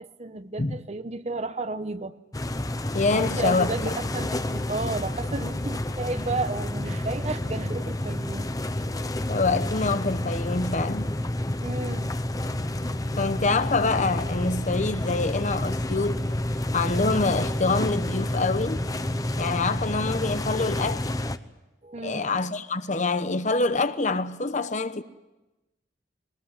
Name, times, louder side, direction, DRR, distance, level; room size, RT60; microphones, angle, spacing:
voice 1, 0.0-2.2 3.1-8.5 11.6-12.1 21.8-22.3, right 2 dB, 35° right, 1.0 m, -33 dB
sound 1, 2.3-21.4, left 1 dB, 20° left, 0.8 m, -29 dB
voice 2, 2.9-3.9 9.3-11.1 13.2-16.2 16.7-18.8 19.4-21.1 22.0-25.0, left 3 dB, 40° left, 0.9 m, -26 dB
22.0 x 20.0 x 9.6 m
head